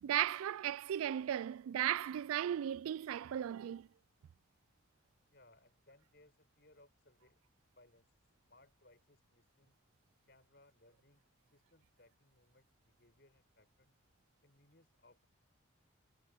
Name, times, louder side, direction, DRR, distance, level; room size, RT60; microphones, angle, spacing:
voice 1, 0.0-3.9, right 11 dB, 90° right, 0.3 m, -36 dB
voice 2, 5.3-7.4 7.8-9.8 10.3-14.0 14.4-15.3, left 2 dB, 50° left, 7.0 m, -67 dB
head